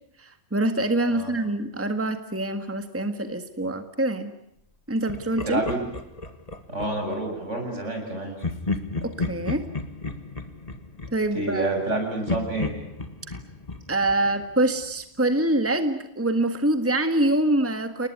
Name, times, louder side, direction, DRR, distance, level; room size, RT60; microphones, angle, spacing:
voice 1, 0.2-4.3 4.9-5.6 9.0-9.6 11.1-11.7 13.3-13.4 13.9-18.1, right 1 dB, 10° right, 8 dB, 1.7 m, -25 dB
Laughter, 5.1-7.2 8.4-11.9 12.3-15.0, left 3 dB, 30° left, 2.0 m, -33 dB
voice 2, 5.5-5.8 6.7-8.3 11.3-12.7, right 2 dB, 70° right, 3 dB, 7.8 m, -28 dB
29.5 x 20.0 x 9.7 m, 0.78 s
omnidirectional pair, 1.3 m